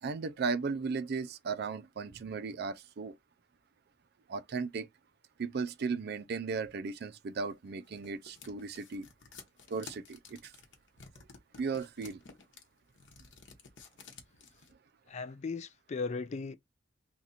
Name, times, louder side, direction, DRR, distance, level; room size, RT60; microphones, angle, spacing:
voice 1, 0.0-3.2 4.3-4.9 5.4-9.1 9.7-10.5 11.6-12.2, right 4 dB, 60° right, 0.4 m, -36 dB
sound 1, 7.5-14.7, left 5 dB, 70° left, 1.0 m, -53 dB
voice 2, 15.1-16.5, left 4 dB, 35° left, 0.4 m, -37 dB
2.9 x 2.5 x 4.0 m
head